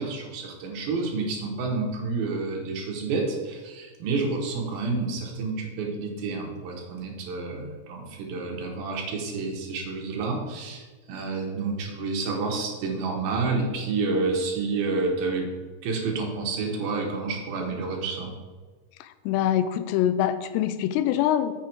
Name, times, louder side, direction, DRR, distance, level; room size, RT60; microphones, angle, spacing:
voice 1, 0.0-10.8 11.1-15.5 15.8-18.3, right 3 dB, 70° right, 0 dB, 3.0 m, -29 dB
voice 2, 19.3-21.5, left 11 dB, 90° left, 11 dB, 2.7 m, -24 dB
8.3 x 6.3 x 4.5 m, 1.4 s
omnidirectional pair, 4.8 m